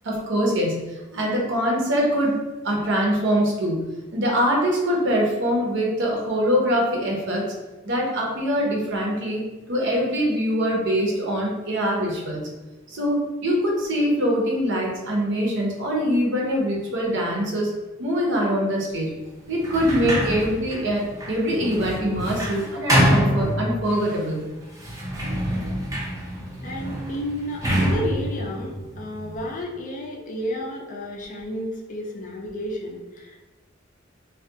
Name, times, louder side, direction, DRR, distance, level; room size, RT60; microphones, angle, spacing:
voice 1, 0.0-7.5 7.8-12.4 12.9-17.7 18.0-19.1 19.5-24.5, equal, 60° right, -2 dB, 0.6 m, -23 dB
Sliding door, 19.6-24.1 24.7-29.6, equal, 15° right, 0.5 m, -26 dB
voice 2, 26.6-33.5, equal, 40° left, 0 dB, 0.4 m, -32 dB
2.3 x 2.1 x 2.7 m, 1.1 s
head